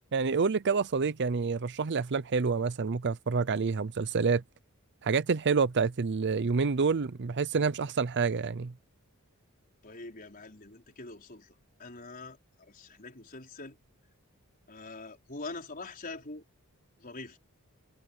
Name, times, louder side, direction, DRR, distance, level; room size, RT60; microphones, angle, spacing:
voice 1, 0.1-4.4 5.0-8.7, right 5 dB, 50° right, 0.6 m, -28 dB
voice 2, 9.8-13.8 14.7-16.4 17.0-17.4, left 3 dB, 40° left, 5.0 m, -44 dB
head